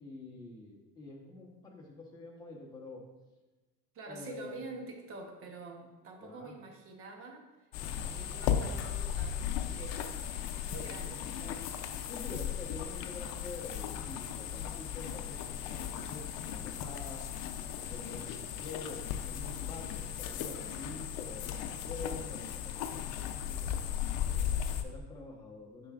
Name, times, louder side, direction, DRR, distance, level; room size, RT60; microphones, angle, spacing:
voice 1, 0.0-3.0 4.1-4.6 6.2-6.5 7.8-8.3 10.9-11.0 12.1-17.2 17.8-23.8 24.3-25.9, left 2 dB, 10° left, -3 dB, 1.0 m, -47 dB
voice 2, 3.9-7.7 8.1-10.2 10.5-12.1, right 3 dB, 35° right, 3 dB, 1.0 m, -47 dB
sound 1, 7.7-24.8, left 9 dB, 65° left, 0.6 m, -36 dB
7.1 x 5.9 x 2.5 m, 1.1 s
cardioid pair, 155°, 38 cm